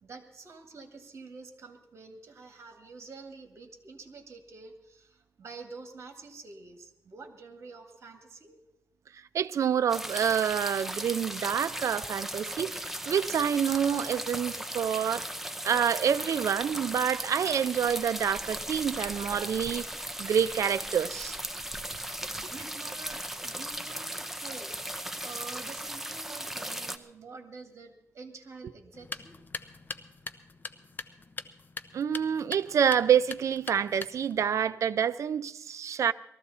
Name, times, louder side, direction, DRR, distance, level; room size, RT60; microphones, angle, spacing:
voice 1, 0.0-8.6 22.4-24.7 25.2-29.3, right 4 dB, 55° right, 2.0 m, -47 dB
voice 2, 9.3-15.3 15.6-19.8 20.2-21.4 31.9-36.1, right 8 dB, 75° right, 0.5 m, -27 dB
sound 1, 9.9-27.0, right 1 dB, 5° right, 0.8 m, -37 dB
sound 2, 28.9-34.4, left 4 dB, 35° left, 0.7 m, -43 dB
19.5 x 14.0 x 4.2 m
wide cardioid pair, 120°, 5 cm